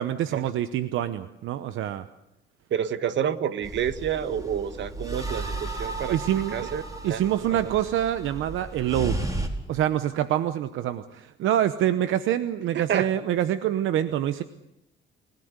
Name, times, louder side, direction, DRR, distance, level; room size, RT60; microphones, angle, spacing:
voice 1, 0.0-2.0 6.1-6.7 7.0-9.2 9.7-14.4, right 11 dB, 85° right, 12 dB, 0.9 m, -26 dB
voice 2, 2.7-6.2 6.5-7.2 12.7-13.1, right 9 dB, 65° right, 12 dB, 1.5 m, -28 dB
sound 1, 3.6-9.5, right 2 dB, 20° right, 4.3 m, -34 dB
29.5 x 17.5 x 8.2 m, 0.85 s
cardioid pair, 90°, 20 cm